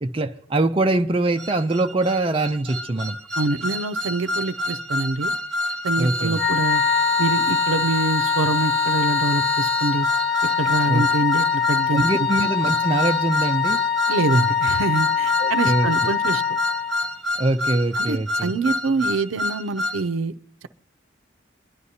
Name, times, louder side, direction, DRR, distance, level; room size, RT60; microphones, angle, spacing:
voice 1, 0.0-3.2 6.0-6.4 10.9-11.0 11.9-13.8 15.4-15.9 17.4-18.5, right 2 dB, 25° right, 0.5 m, -23 dB
sound 1, 1.4-20.0, left 1 dB, 5° left, 1.3 m, -28 dB
voice 2, 3.4-5.3 5.8-6.8 7.2-10.1 10.6-12.0 14.1-16.4 18.0-20.3, right 3 dB, 85° right, 0.5 m, -25 dB
Wind instrument woodwind instrument, 6.3-17.1, left 7 dB, 50° left, 0.4 m, -23 dB
24.0 x 11.0 x 2.8 m
head